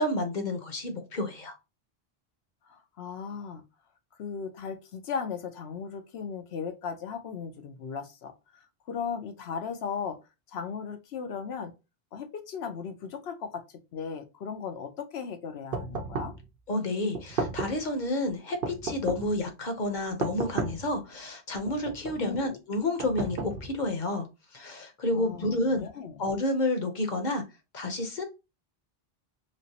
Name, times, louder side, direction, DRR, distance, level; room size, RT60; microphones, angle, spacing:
voice 1, 0.0-1.5 16.7-24.3 24.5-25.9 26.2-27.4 27.7-28.2, left 1 dB, 50° left, 0.8 m, -30 dB
voice 2, 2.7-3.6 4.2-10.2 10.5-11.7 12.1-13.6 13.9-16.3 22.2-22.6 25.1-26.2, left 6 dB, 90° left, 0.9 m, -37 dB
sound 1, 15.7-16.4 17.1-17.9 18.6-19.4 20.2-20.9 21.7-22.3 23.0-23.9, right 4 dB, 65° right, 0.8 m, -33 dB
3.2 x 2.9 x 2.7 m
omnidirectional pair, 1.0 m